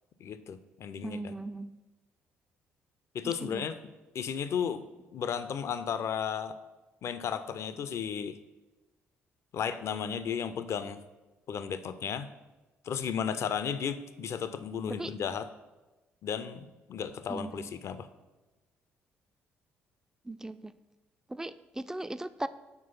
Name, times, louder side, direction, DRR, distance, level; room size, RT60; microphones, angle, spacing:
voice 1, 0.2-1.3 3.1-3.8 4.1-4.8 5.1-6.6 7.0-8.4 9.5-11.0 11.5-12.3 12.8-15.5 16.2-18.1, left 7 dB, 50° left, 12 dB, 0.5 m, -34 dB
voice 2, 1.0-1.7 3.2-3.6 15.0-15.1 17.3-17.7 20.3-20.7 21.3-22.5, right 2 dB, 10° right, 13 dB, 0.3 m, -38 dB
6.0 x 4.7 x 5.6 m, 1.1 s
figure-of-eight pair, 45°, 6 cm